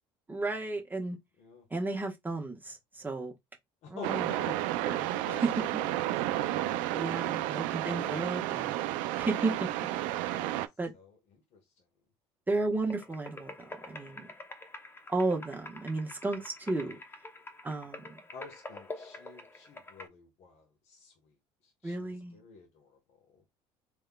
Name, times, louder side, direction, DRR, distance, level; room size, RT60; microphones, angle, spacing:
voice 1, 0.3-1.2 1.7-3.3 3.9-4.3 4.8-5.1 6.9-8.7 9.1-9.5 10.8-10.9 12.5-14.3 15.1-17.0 17.6-18.2 21.8-22.4, right 2 dB, 15° right, 1.2 m, -33 dB
voice 2, 3.8-8.2 9.6-9.7 10.3-10.6 10.9-11.6 18.3-21.3 21.6-23.4, left 4 dB, 60° left, 1.4 m, -49 dB
sound 1, 4.0-10.7, right 15 dB, 75° right, 0.4 m, -32 dB
sound 2, 12.9-20.1, left 2 dB, 15° left, 0.8 m, -47 dB
3.6 x 3.2 x 2.3 m
supercardioid pair, 80°, 13 cm